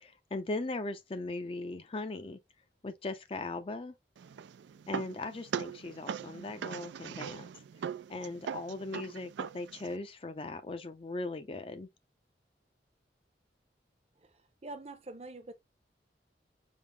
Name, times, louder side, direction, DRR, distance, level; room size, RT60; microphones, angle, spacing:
voice 1, 0.0-2.4 2.8-3.9 4.9-7.5 8.1-11.9, left 2 dB, 30° left, 0.4 m, -39 dB
sound 1, 4.2-10.0, right 7 dB, 85° right, 0.3 m, -41 dB
voice 2, 14.6-15.5, right 2 dB, 35° right, 0.7 m, -44 dB
5.0 x 2.0 x 3.3 m
head